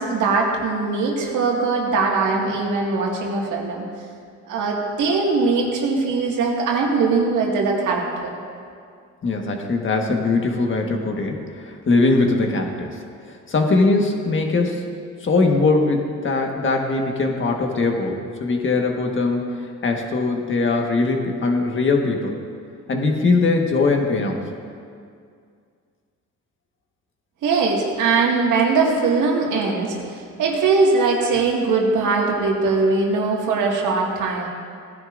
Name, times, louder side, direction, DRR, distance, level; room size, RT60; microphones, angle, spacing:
voice 1, 0.0-3.9 4.5-8.3 27.4-30.0 30.4-34.5, right 4 dB, 85° right, -2 dB, 2.1 m, -21 dB
voice 2, 9.2-13.0 13.2-14.9 15.2-19.6 19.8-22.4 22.9-24.5, left 3 dB, 40° left, 2 dB, 1.6 m, -21 dB
18.0 x 10.5 x 2.6 m, 2.3 s
cardioid pair, 90°, 30 cm